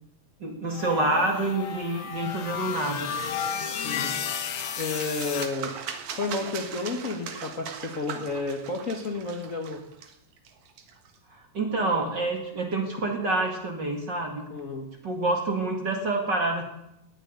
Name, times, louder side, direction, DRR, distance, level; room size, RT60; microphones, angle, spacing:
voice 1, 0.4-3.1 11.3-14.5 15.0-16.6, right 2 dB, 35° right, 2 dB, 2.1 m, -27 dB
sound 1, 0.7-5.5, left 7 dB, 60° left, 2.0 m, -32 dB
sound 2, 3.6-11.2, right 7 dB, 60° right, 2.5 m, -40 dB
voice 2, 4.8-5.7 6.2-9.8 14.5-14.9, left 3 dB, 40° left, 2 dB, 1.1 m, -31 dB
19.0 x 7.7 x 9.6 m, 0.81 s
omnidirectional pair, 4.1 m